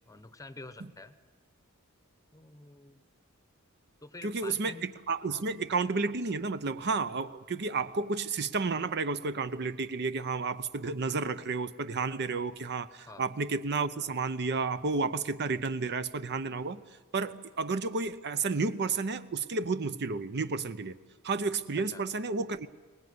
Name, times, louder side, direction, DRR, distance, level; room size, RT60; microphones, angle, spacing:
voice 1, 0.1-1.1 2.3-3.0 4.0-4.9 5.3-5.4 13.1-13.3 21.8-22.1, left 3 dB, 15° left, 12 dB, 0.9 m, -48 dB
voice 2, 4.2-16.8 17.1-21.0 21.2-22.7, right 4 dB, 50° right, 12 dB, 0.7 m, -31 dB
22.0 x 19.5 x 9.5 m, 1.3 s
head